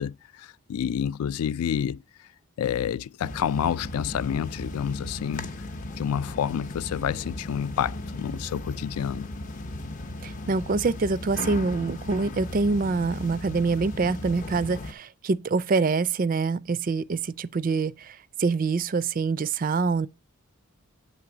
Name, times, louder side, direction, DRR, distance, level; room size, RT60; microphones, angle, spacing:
voice 1, 0.0-2.3 2.6-5.5 6.0-9.3, left 8 dB, 80° left, 0.3 m, -29 dB
sound 1, 3.2-14.9, left 1 dB, 35° left, 0.6 m, -36 dB
voice 2, 10.2-20.1, right 4 dB, 40° right, 0.3 m, -25 dB
8.7 x 3.3 x 5.9 m
head